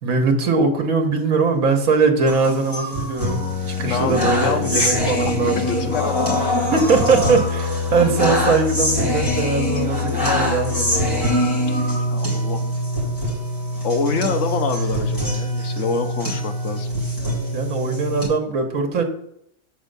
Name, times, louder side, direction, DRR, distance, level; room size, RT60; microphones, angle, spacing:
voice 1, 0.0-5.9 6.6-11.3 17.5-19.0, right 4 dB, 75° right, 3 dB, 1.6 m, -21 dB
sound 1, 2.3-18.3, left 1 dB, 15° left, 2.8 m, -23 dB
voice 2, 3.8-6.7 12.1-12.7 13.8-16.9, left 5 dB, 60° left, 6 dB, 1.2 m, -26 dB
7.3 x 4.4 x 5.2 m, 0.73 s
omnidirectional pair, 1.5 m